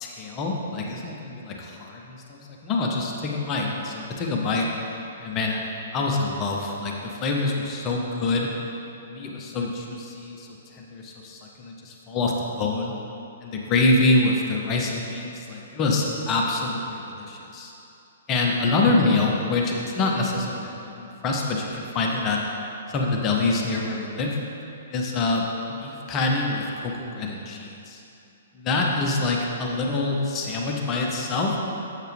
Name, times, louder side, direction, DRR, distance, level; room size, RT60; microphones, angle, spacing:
voice 1, 0.0-4.9 5.2-5.6 5.9-8.5 9.0-12.9 13.4-17.7 18.3-22.4 22.9-24.4 24.9-28.0 28.5-31.6, left 2 dB, 25° left, -1 dB, 0.7 m, -26 dB
7.4 x 6.5 x 3.3 m, 2.8 s
figure-of-eight pair, 115°, 0 cm